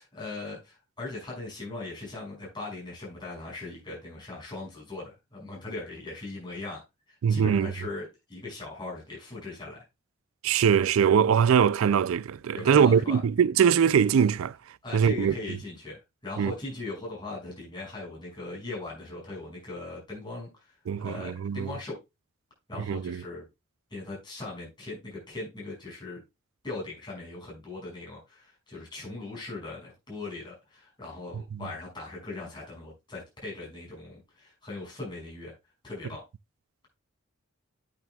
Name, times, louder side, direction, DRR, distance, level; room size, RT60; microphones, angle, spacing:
voice 1, 0.0-6.8 7.1-9.8 12.5-13.2 14.8-20.5 21.0-22.0 22.7-23.5 23.9-26.2 26.6-35.5 35.8-36.2, left 2 dB, 20° left, 5.8 m, -39 dB
voice 2, 7.2-7.7 10.4-14.6 14.9-15.3 16.4-16.5 20.9-21.7 22.9-23.2, right 7 dB, 85° right, 0.4 m, -22 dB
9.0 x 8.9 x 2.3 m
head